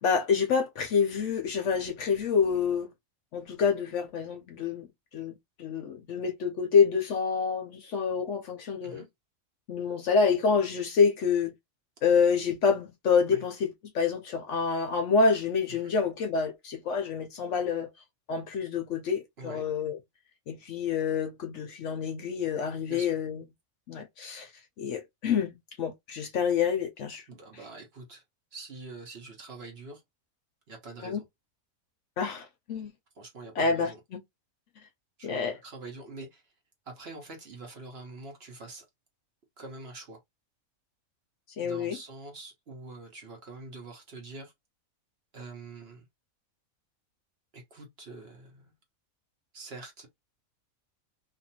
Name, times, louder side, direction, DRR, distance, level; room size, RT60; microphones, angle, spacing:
voice 1, 0.0-2.9 3.3-4.9 5.1-5.3 5.6-9.0 9.7-11.5 12.0-13.7 13.9-17.9 18.3-20.0 20.5-23.4 23.9-24.5 24.8-27.2 31.0-31.2 32.2-32.9 33.6-33.9 35.2-35.6 41.6-42.0, left 5 dB, 65° left, 0.8 m, -27 dB
voice 2, 27.3-28.2 28.5-30.0 30.7-31.2 33.1-34.0 35.2-36.5 36.8-38.8 39.6-40.2 41.6-44.5 45.3-46.1 47.5-48.7 49.5-50.1, right 3 dB, 50° right, 1.1 m, -45 dB
2.7 x 2.5 x 2.7 m
omnidirectional pair, 1.5 m